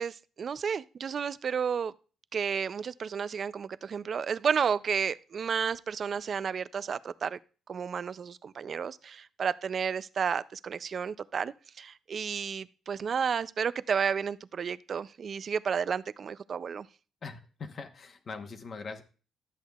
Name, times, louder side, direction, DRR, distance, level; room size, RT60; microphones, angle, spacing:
voice 1, 0.0-1.9 2.3-7.4 7.7-16.9, right 6 dB, 35° right, 0.3 m, -32 dB
voice 2, 17.2-19.0, left 4 dB, 35° left, 1.0 m, -41 dB
12.5 x 8.1 x 2.3 m
cardioid pair, 155°, 0 cm